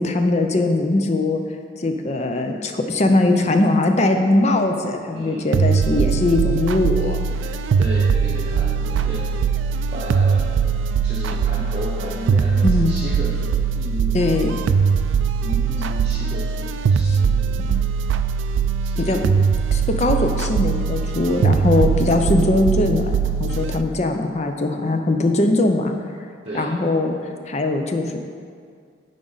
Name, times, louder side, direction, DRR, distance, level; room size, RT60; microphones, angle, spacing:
voice 1, 0.0-1.4 1.8-7.2 12.6-13.0 14.1-14.6 17.1-17.2 17.7-17.8 19.0-19.2 19.7-25.9 26.5-27.1 27.5-28.2, left 2 dB, 35° left, 5 dB, 0.5 m, -20 dB
voice 2, 5.1-5.6 7.8-9.2 9.9-10.5 11.0-14.2 15.4-17.6 18.8-19.2 26.4-26.7, right 1 dB, 30° right, -6 dB, 0.8 m, -33 dB
sound 1, 5.5-23.8, right 6 dB, 80° right, 0.3 m, -21 dB
9.7 x 5.1 x 4.0 m, 2.1 s
head